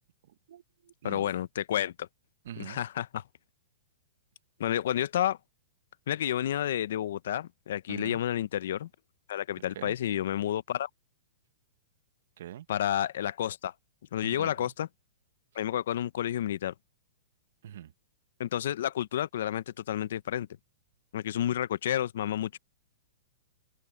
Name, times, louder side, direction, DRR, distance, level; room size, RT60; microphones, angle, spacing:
voice 1, 0.2-1.3 2.4-2.8 7.9-8.2 9.7-9.9 12.4-12.7 14.2-14.7 17.6-17.9, right 11 dB, 70° right, 0.8 m, -44 dB
voice 2, 1.0-2.1 2.6-3.2 4.6-5.4 6.1-8.9 9.3-10.9 12.7-13.7 14.1-14.9 15.5-16.7 18.4-20.5 21.1-22.6, left 11 dB, 70° left, 0.7 m, -30 dB
open air
hypercardioid pair, 145°, 0 cm